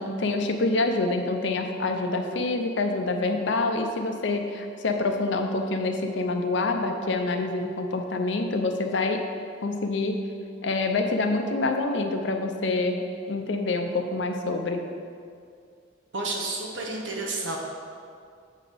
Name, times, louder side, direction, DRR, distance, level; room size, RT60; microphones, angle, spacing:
voice 1, 0.0-9.2 9.6-10.2 10.6-14.8, left 3 dB, 70° left, 5 dB, 0.6 m, -26 dB
voice 2, 16.1-17.6, right 2 dB, 75° right, 0 dB, 1.0 m, -30 dB
7.3 x 4.0 x 5.0 m, 2.3 s
head